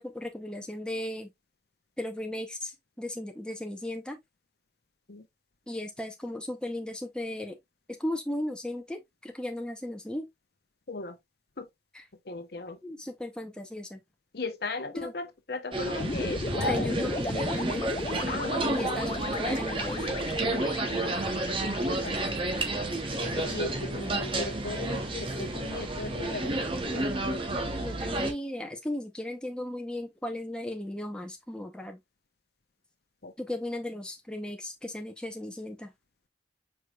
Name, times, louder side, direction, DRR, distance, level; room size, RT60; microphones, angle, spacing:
voice 1, 0.0-1.3 2.0-4.2 5.7-7.6 8.0-10.3 11.9-12.0 12.8-14.0 15.0-15.1 16.7-17.9 18.7-20.1 27.8-32.0 33.4-35.9, left 1 dB, 5° left, 0.7 m, -36 dB
voice 2, 12.2-12.8 14.3-17.0 18.3-19.0 20.8-21.0 21.7-22.1 23.1-26.6 26.9-27.1 33.2-33.3, left 3 dB, 55° left, 0.7 m, -37 dB
sound 1, 15.7-28.3, right 2 dB, 30° right, 0.8 m, -31 dB
sound 2, 16.0-24.3, left 3 dB, 30° left, 0.4 m, -36 dB
4.8 x 4.6 x 2.3 m
head